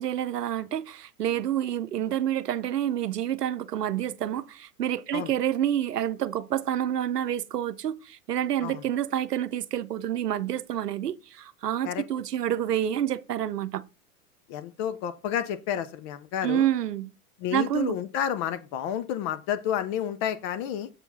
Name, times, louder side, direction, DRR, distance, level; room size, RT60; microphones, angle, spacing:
voice 1, 0.0-13.8 16.4-17.1 17.5-18.0, right 11 dB, 90° right, 0.8 m, -28 dB
voice 2, 14.5-16.7 17.4-20.9, left 9 dB, 25° left, 0.3 m, -30 dB
7.1 x 4.4 x 5.5 m
hypercardioid pair, 105°, 46 cm